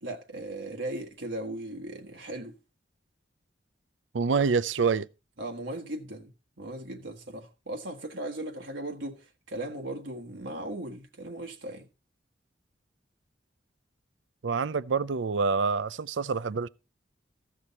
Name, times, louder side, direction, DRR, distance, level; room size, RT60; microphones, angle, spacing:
voice 1, 0.0-2.5 5.4-6.3 6.6-11.9, right 1 dB, 75° right, 1.5 m, -37 dB
voice 2, 4.1-5.1 14.4-16.7, right 5 dB, 90° right, 0.5 m, -26 dB
15.0 x 6.3 x 4.2 m
head